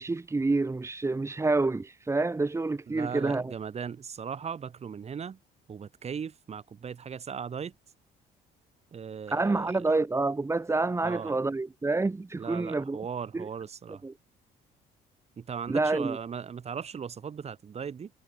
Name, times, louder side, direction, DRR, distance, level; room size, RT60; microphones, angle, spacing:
voice 1, 0.0-3.5 9.3-13.0 13.3-13.4 14.0-14.1 15.7-16.2, right 3 dB, 15° right, 2.2 m, -28 dB
voice 2, 2.9-5.4 5.7-7.7 8.9-9.9 11.0-11.4 12.3-14.0 15.4-18.1, right 7 dB, 40° right, 6.4 m, -38 dB
cardioid pair, 110°, 17 cm